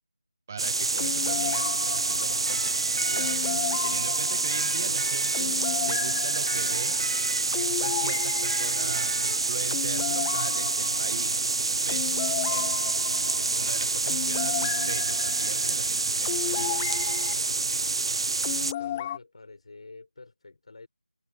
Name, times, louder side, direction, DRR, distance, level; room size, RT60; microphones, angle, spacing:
voice 1, 0.5-3.4 3.8-5.5 5.8-7.0 7.6-11.3 11.7-12.9 13.4-16.8, right 6 dB, 20° right, 1.3 m, -40 dB
sound 1, 0.6-18.7, right 3 dB, 35° right, 0.4 m, -27 dB
sound 2, 1.0-17.3 18.4-19.2, left 12 dB, 10° left, 1.1 m, -35 dB
Electric guitar, 2.3-3.8 4.5-5.9 6.5-7.7 8.4-9.7, right 2 dB, 60° right, 2.3 m, -39 dB
voice 2, 18.6-20.9, left 3 dB, 45° left, 7.1 m, -48 dB
figure-of-eight pair, 170°, 5 cm